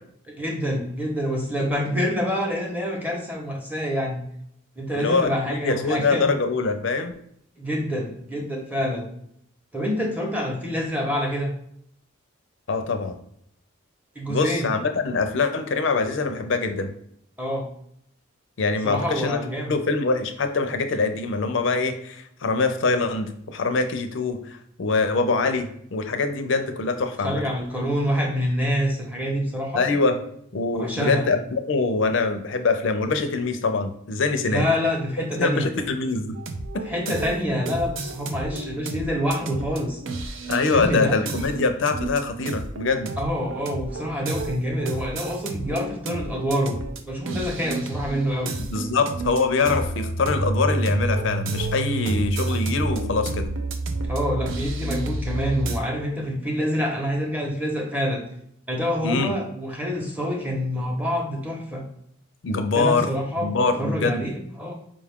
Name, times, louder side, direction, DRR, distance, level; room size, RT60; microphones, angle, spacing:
voice 1, 0.3-4.2 4.8-6.3 7.6-9.1 9.7-11.5 14.1-14.7 17.4-17.7 18.8-19.8 27.2-29.9 30.7-31.3 34.5-35.7 36.8-40.0 40.7-41.2 43.2-46.8 47.1-48.6 54.1-58.2 58.7-61.8 62.5-64.7, equal, 10° right, 0 dB, 0.8 m, -26 dB
voice 2, 4.9-7.1 12.7-13.2 14.3-16.9 18.6-19.4 19.7-27.4 29.7-30.2 30.5-34.6 35.4-36.4 36.7-36.8 40.5-43.1 48.6-53.5 59.0-59.3 62.4-63.1 63.4-64.3, left 4 dB, 60° left, 7 dB, 0.5 m, -24 dB
sound 1, 36.4-55.8, right 2 dB, 65° right, 0.5 m, -30 dB
4.9 x 2.4 x 3.5 m, 0.70 s
head